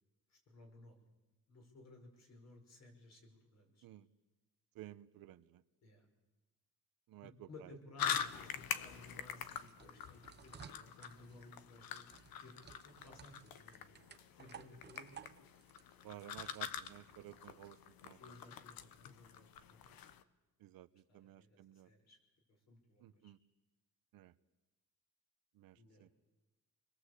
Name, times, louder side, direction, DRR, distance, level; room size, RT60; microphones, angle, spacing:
voice 1, 0.3-1.0 1.5-3.8 5.8-6.1 7.2-15.1 18.2-20.0 21.1-21.6 21.8-22.2 22.7-23.3 25.8-26.0, left 2 dB, 50° left, 3 dB, 6.0 m, -58 dB
voice 2, 4.7-5.6 7.1-7.7 16.0-17.8 18.0-18.2 20.6-21.9 23.0-23.4 24.1-24.3 25.5-26.1, right 13 dB, 75° right, 13 dB, 1.0 m, -54 dB
sound 1, 8.0-20.2, left 9 dB, 80° left, 1.3 m, -45 dB
sound 2, 9.0-17.7, right 8 dB, 30° right, 0.9 m, -58 dB
29.5 x 21.5 x 8.3 m, 1.1 s
cardioid pair, 180°, 35 cm